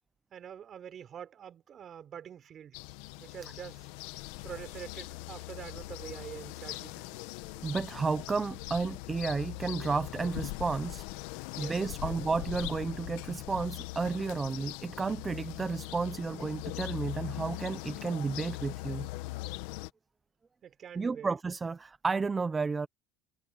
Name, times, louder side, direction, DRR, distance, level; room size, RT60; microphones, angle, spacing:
voice 1, 0.3-2.8 3.2-3.9 4.4-7.2 11.5-12.2 20.6-21.3, right 9 dB, 35° right, 4.8 m, -46 dB
sound 1, 2.7-19.9, left 20 dB, 75° left, 1.2 m, -41 dB
voice 2, 7.6-11.1 11.6-19.1 21.0-22.9, right 4 dB, 15° right, 0.6 m, -32 dB
supercardioid pair, 130°, 0 cm